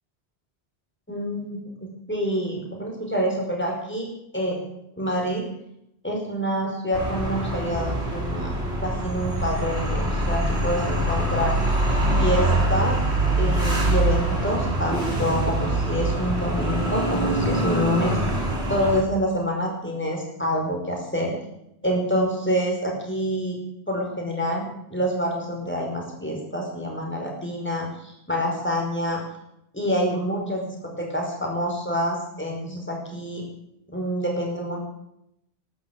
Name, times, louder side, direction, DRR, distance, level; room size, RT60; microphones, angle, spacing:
voice 1, 1.1-4.6 5.0-5.5 6.0-11.5 12.2-13.0 13.4-18.2 18.7-21.4 21.8-23.6 23.9-29.2 29.7-33.4 33.9-34.8, equal, 10° left, 0 dB, 5.2 m, -27 dB
sound 1, 6.9-19.0, right 1 dB, 70° right, 3.8 m, -24 dB
13.0 x 12.5 x 8.7 m, 0.79 s
omnidirectional pair, 1.1 m